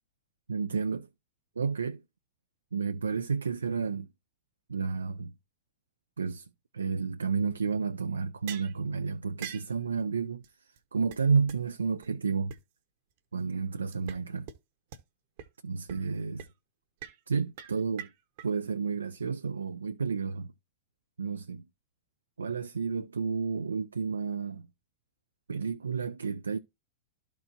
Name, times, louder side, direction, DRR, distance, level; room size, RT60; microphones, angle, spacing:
voice 1, 0.5-1.1 1.6-2.0 2.7-4.1 4.7-5.3 6.2-6.4 6.7-10.4 10.9-12.5 13.3-14.5 15.6-16.5 17.3-18.1 18.4-20.5 21.2-21.6 22.4-24.7 25.5-26.6, right 5 dB, 80° right, 0.3 m, -31 dB
sound 1, 8.5-8.8 9.4-9.7 10.4-10.5 10.8-10.9 11.1-11.2 11.5-11.6 12.0-12.1 12.5-12.6 13.9-14.2 14.5-14.6 14.9-15.0 15.4-15.5 15.9-16.1 16.4-16.5 17.0-17.2 17.6-18.5, right 10 dB, 55° right, 0.9 m, -43 dB
12.5 x 4.5 x 2.8 m
figure-of-eight pair, 95°, 0 cm